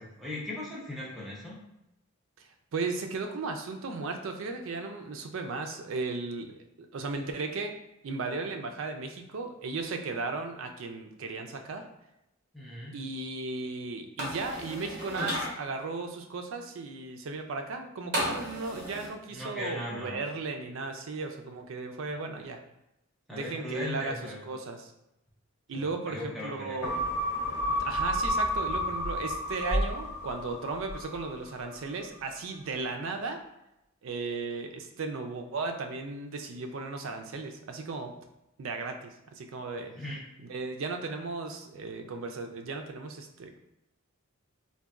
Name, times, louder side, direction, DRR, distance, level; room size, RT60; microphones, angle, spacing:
voice 1, 0.0-1.6 12.5-13.0 19.3-20.1 22.1-22.3 23.3-24.4 25.7-26.8 39.8-40.2, left 1 dB, ahead, -7 dB, 0.6 m, -38 dB
voice 2, 2.4-7.7 8.0-11.8 12.9-22.6 23.3-24.9 25.7-27.1 27.8-33.4 34.0-38.1 38.6-39.9 40.4-43.6, right 3 dB, 70° right, 5 dB, 0.4 m, -36 dB
sound 1, 14.2-15.5 18.1-19.1, equal, 50° right, 0.8 m, -33 dB
sound 2, 26.8-31.5 31.9-32.0, equal, 75° left, 0.6 m, -31 dB
3.9 x 2.1 x 2.3 m, 0.87 s
head